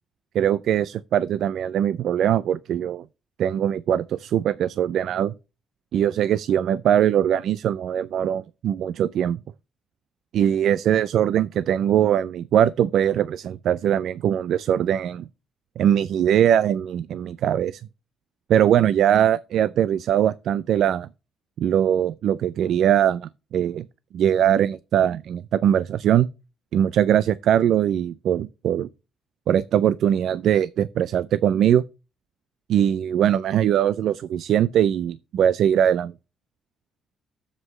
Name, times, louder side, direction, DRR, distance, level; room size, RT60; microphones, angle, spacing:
voice 1, 0.3-3.0 3.4-5.3 5.9-9.4 10.3-15.3 15.8-17.8 18.5-21.1 21.6-23.9 24.1-26.3 26.7-28.9 29.5-31.8 32.7-36.1, right 10 dB, 75° right, 0.4 m, -21 dB
7.9 x 7.5 x 3.2 m
cardioid pair, 90°, 0 cm